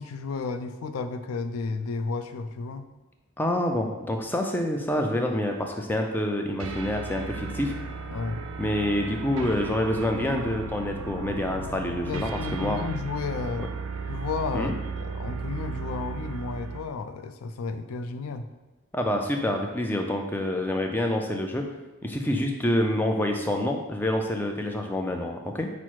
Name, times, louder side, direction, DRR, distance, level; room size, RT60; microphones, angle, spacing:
voice 1, 0.0-2.9 8.1-8.5 12.1-13.7 14.1-18.4, left 4 dB, 85° left, 8 dB, 0.4 m, -32 dB
voice 2, 3.4-7.7 8.6-12.8 14.5-14.8 18.9-21.6 22.0-25.7, left 1 dB, 10° left, 2 dB, 0.3 m, -27 dB
sound 1, 6.6-16.9, right 4 dB, 70° right, 0.4 m, -35 dB
5.7 x 2.0 x 4.6 m, 1.1 s
head